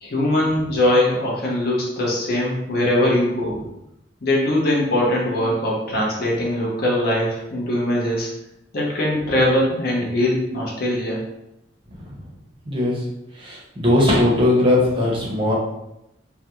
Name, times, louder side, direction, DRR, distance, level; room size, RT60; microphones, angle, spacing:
voice 1, 0.0-3.6 4.2-8.3 8.7-11.2, left 1 dB, 55° left, -3 dB, 0.7 m, -21 dB
voice 2, 13.4-15.5, left 1 dB, 25° right, -4 dB, 0.6 m, -18 dB
2.4 x 2.1 x 2.8 m, 0.85 s
head